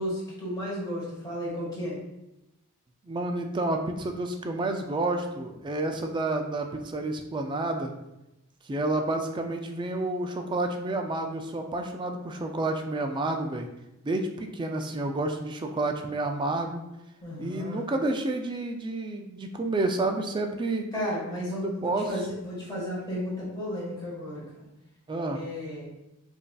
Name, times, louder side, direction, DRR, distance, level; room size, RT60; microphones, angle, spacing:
voice 1, 0.0-2.0 17.2-17.8 20.9-24.6 25.3-25.8, equal, 15° left, -7 dB, 1.4 m, -33 dB
voice 2, 3.1-7.9 8.6-13.7 14.0-16.8 17.4-20.9 21.5-22.1 25.1-25.4, right 2 dB, 20° right, 4 dB, 0.3 m, -30 dB
5.2 x 2.6 x 2.3 m, 0.92 s
head